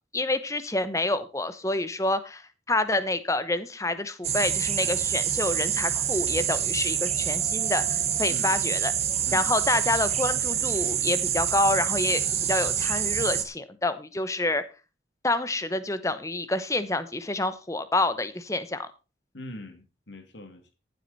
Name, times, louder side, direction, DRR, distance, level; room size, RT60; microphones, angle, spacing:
voice 1, 0.1-8.9 9.3-12.2 12.5-14.6 15.2-18.9, left 2 dB, 15° left, 12 dB, 0.9 m, -27 dB
sound 1, 4.2-13.4, right 9 dB, 35° right, 1.3 m, -27 dB
voice 2, 8.3-8.6 9.3-9.6 19.3-20.7, left 1 dB, 80° left, 7 dB, 2.5 m, -42 dB
15.0 x 7.9 x 4.2 m, 0.31 s
head